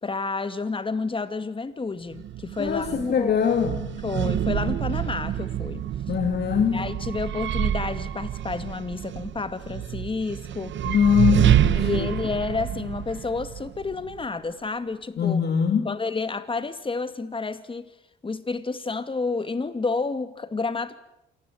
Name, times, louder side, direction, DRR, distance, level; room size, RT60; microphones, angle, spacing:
voice 1, 0.0-3.5 4.0-5.8 6.7-10.7 11.7-15.5 15.8-17.9 18.2-21.0, left 4 dB, 25° left, 2.3 m, -30 dB
sound 1, 2.1-14.2, right 11 dB, 70° right, 1.2 m, -27 dB
voice 2, 2.6-4.0 6.1-7.0 10.9-12.1 15.2-16.0, left 7 dB, 55° left, 2.4 m, -23 dB
27.5 x 20.0 x 9.3 m
cardioid pair, 90°, 20 cm